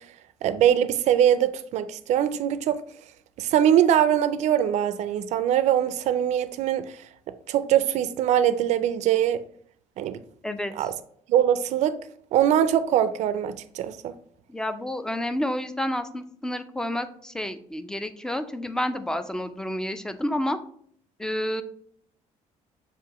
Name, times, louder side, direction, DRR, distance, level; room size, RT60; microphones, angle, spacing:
voice 1, 0.4-2.8 3.4-6.9 7.5-9.4 10.0-10.2 10.8-10.9 11.3-12.0 12.3-14.1, right 10 dB, 65° right, 0.4 m, -22 dB
voice 2, 10.4-10.9 14.5-20.6 21.2-21.6, left 1 dB, 5° left, 0.3 m, -30 dB
6.7 x 2.6 x 2.9 m
cardioid pair, 120°, 13 cm